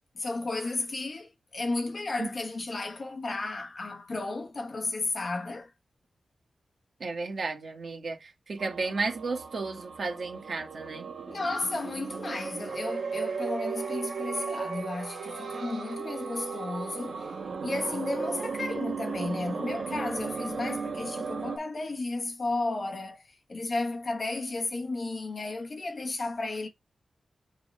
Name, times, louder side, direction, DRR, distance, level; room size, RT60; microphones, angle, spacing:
voice 1, 0.1-5.7 11.3-17.3 17.6-26.7, left 2 dB, 45° left, 1.2 m, -33 dB
voice 2, 7.0-11.1, right 3 dB, 60° right, 1.7 m, -33 dB
sound 1, 8.6-21.6, right 5 dB, 85° right, 1.6 m, -35 dB
6.6 x 4.7 x 3.2 m
wide cardioid pair, 115°, 0 cm